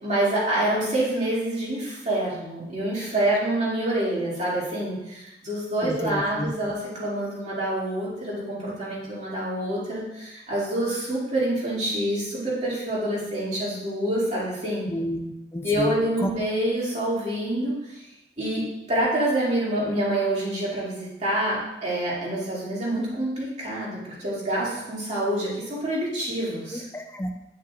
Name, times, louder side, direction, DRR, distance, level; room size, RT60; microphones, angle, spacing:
voice 1, 0.0-14.8 15.6-18.0 18.4-26.8, right 1 dB, 40° right, -7 dB, 2.5 m, -27 dB
voice 2, 5.8-6.5 14.9-16.0 16.2-16.3 26.7-27.3, equal, 15° left, 4 dB, 0.5 m, -30 dB
9.3 x 5.6 x 2.5 m, 0.94 s
head